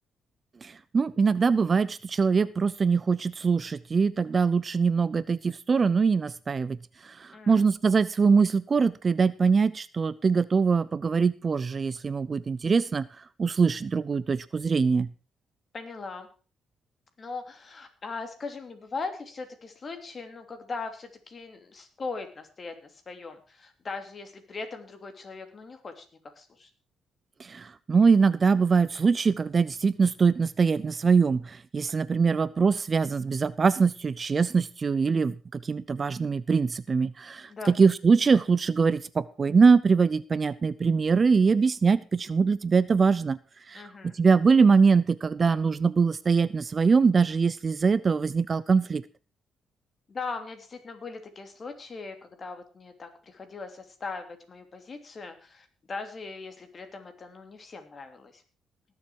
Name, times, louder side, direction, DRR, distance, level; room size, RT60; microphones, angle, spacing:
voice 1, 0.6-6.8 7.0-13.1 13.4-15.1 27.4-43.4 43.7-49.0, right 5 dB, 35° right, 18 dB, 0.5 m, -23 dB
voice 2, 7.3-7.6 15.7-16.3 17.2-26.1 26.4-26.7 37.5-37.7 43.7-44.1 50.1-58.4, left 4 dB, 40° left, 7 dB, 2.8 m, -39 dB
19.0 x 7.2 x 4.7 m, 0.36 s
cardioid pair, 90°, 0 cm